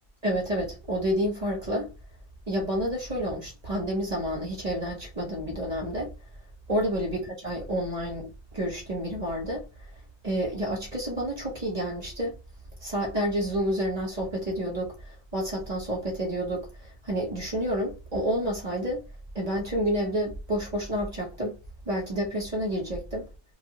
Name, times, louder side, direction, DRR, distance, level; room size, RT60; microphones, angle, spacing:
voice 1, 0.2-1.9 2.5-6.1 6.7-9.7 10.2-12.3 12.8-19.0 19.3-21.5 21.9-23.3, equal, 30° right, 0.8 m, -29 dB
2.7 x 2.6 x 2.8 m
omnidirectional pair, 1.6 m